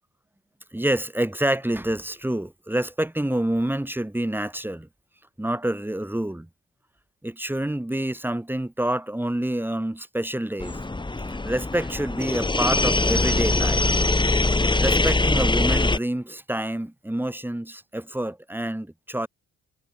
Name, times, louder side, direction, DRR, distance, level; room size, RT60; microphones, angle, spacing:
voice 1, 0.7-4.9 5.4-6.5 7.2-10.8 11.4-13.9 14.8-19.3, right 1 dB, 5° right, 5.5 m, -27 dB
sound 1, 10.6-16.0, left 2 dB, 15° left, 3.0 m, -22 dB
cardioid pair, 90°, 30 cm